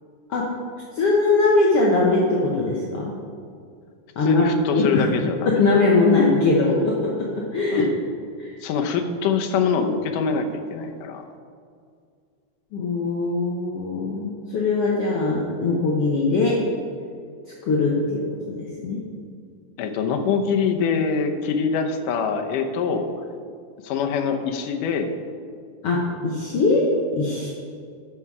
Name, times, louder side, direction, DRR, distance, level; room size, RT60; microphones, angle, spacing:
voice 1, 0.9-3.1 4.2-5.1 5.4-7.9 8.4-8.5 12.7-16.6 17.4-19.0 25.8-27.5, left 3 dB, 60° left, -3 dB, 1.6 m, -21 dB
voice 2, 4.2-5.6 7.7-7.9 8.6-11.2 19.8-23.1 23.8-25.2, left 5 dB, 80° left, 5 dB, 2.4 m, -24 dB
13.0 x 5.8 x 4.8 m, 2.2 s
omnidirectional pair, 3.7 m